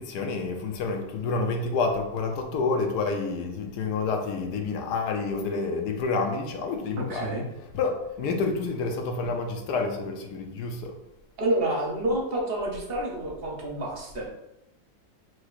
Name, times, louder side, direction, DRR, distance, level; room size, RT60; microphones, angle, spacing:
voice 1, 0.0-7.4 7.7-10.9, left 4 dB, 75° left, 5 dB, 1.1 m, -28 dB
voice 2, 7.0-7.5 11.4-14.3, right 1 dB, 50° right, -1 dB, 0.7 m, -28 dB
6.1 x 3.1 x 2.4 m, 0.90 s
omnidirectional pair, 1.9 m